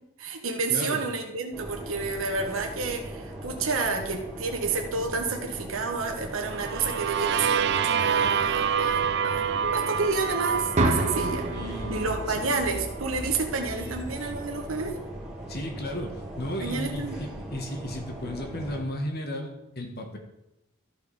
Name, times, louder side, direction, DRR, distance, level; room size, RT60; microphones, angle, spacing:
voice 1, 0.2-11.5 11.9-15.0 16.6-17.2, right 4 dB, 75° right, 2 dB, 1.4 m, -30 dB
voice 2, 0.7-1.0 11.5-12.4 13.7-13.9 15.5-20.2, left 1 dB, 50° left, 4 dB, 1.6 m, -35 dB
sound 1, 1.5-18.8, right 1 dB, 5° right, 2.1 m, -39 dB
sound 2, 6.4-12.3, right 7 dB, 50° right, 0.3 m, -27 dB
sound 3, 10.8-14.7, right 1 dB, 35° right, 1.3 m, -31 dB
14.0 x 5.3 x 4.9 m, 0.87 s
head